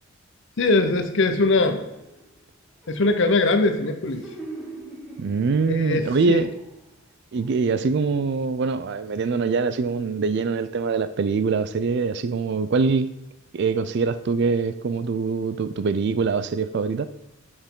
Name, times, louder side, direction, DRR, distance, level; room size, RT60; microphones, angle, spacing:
voice 1, 0.6-1.8 2.9-4.3 5.7-6.4, left 3 dB, 55° left, 8 dB, 0.7 m, -21 dB
sound 1, 1.6-2.4 2.8-7.0 7.4-7.5, right 2 dB, 5° right, 1.0 m, -43 dB
voice 2, 5.2-6.5 7.3-13.1 13.5-17.1, right 4 dB, 50° right, 13 dB, 0.3 m, -23 dB
6.5 x 5.8 x 3.7 m, 0.87 s
head